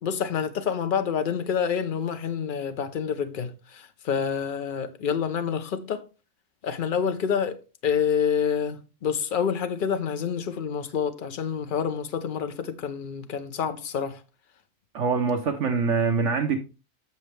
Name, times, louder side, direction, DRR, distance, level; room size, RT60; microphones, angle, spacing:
voice 1, 0.0-6.1 6.6-14.2, left 7 dB, 45° left, 0.9 m, -28 dB
voice 2, 14.9-16.6, right 5 dB, 70° right, 1.2 m, -24 dB
8.2 x 6.6 x 3.3 m
omnidirectional pair, 1.3 m